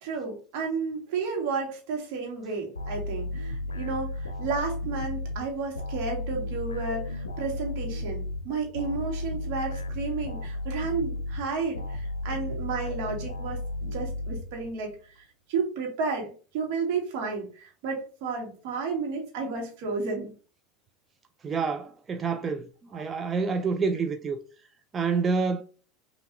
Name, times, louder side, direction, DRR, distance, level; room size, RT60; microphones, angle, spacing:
voice 1, 0.0-20.3, right 4 dB, 55° right, 1.5 m, -32 dB
sound 1, 2.7-14.9, left 2 dB, 85° left, 0.5 m, -34 dB
voice 2, 21.4-22.7 22.9-24.4 24.9-25.6, right 5 dB, 25° right, 0.4 m, -27 dB
5.5 x 2.8 x 2.9 m
figure-of-eight pair, 80°, 0 cm